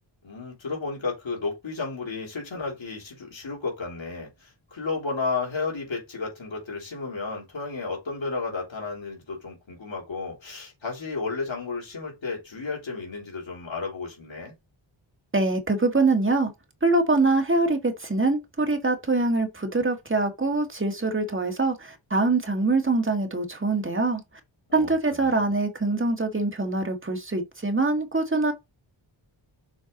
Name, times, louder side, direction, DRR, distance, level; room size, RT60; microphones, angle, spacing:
voice 1, 0.2-14.5 24.7-25.5, left 4 dB, 70° left, 3.5 m, -33 dB
voice 2, 15.3-16.5 16.8-24.2 24.7-28.5, right 3 dB, 25° right, 1.6 m, -24 dB
7.1 x 4.6 x 3.9 m
wide cardioid pair, 110°, 47 cm